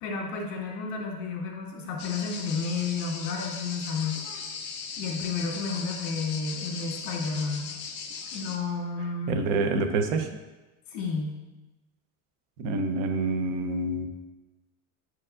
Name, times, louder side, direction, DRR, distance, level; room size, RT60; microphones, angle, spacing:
voice 1, 0.0-4.2 5.0-7.7 8.3-9.4 10.9-11.4, left 4 dB, 60° left, -2 dB, 1.8 m, -31 dB
sound 1, 2.0-8.6, left 5 dB, 30° left, 0.5 m, -38 dB
voice 2, 9.3-10.3 12.6-14.1, right 3 dB, 75° right, 7 dB, 0.8 m, -27 dB
9.6 x 4.6 x 2.5 m, 1.1 s
cardioid pair, 180°, 39 cm